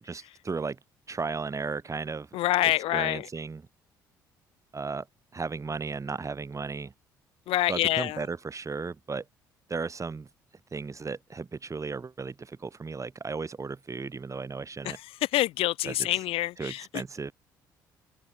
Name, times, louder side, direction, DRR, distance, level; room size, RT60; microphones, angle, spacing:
voice 1, 0.0-0.8 1.1-2.3 2.9-3.6 4.7-5.1 5.3-6.9 7.7-9.3 9.7-10.3 10.7-15.0 15.8-16.1 16.6-17.3, right 4 dB, 30° right, 7.1 m, -35 dB
voice 2, 2.3-3.3 7.5-8.2 14.8-17.0, left 16 dB, 60° left, 1.3 m, -27 dB
open air
figure-of-eight pair, 50°, 10 cm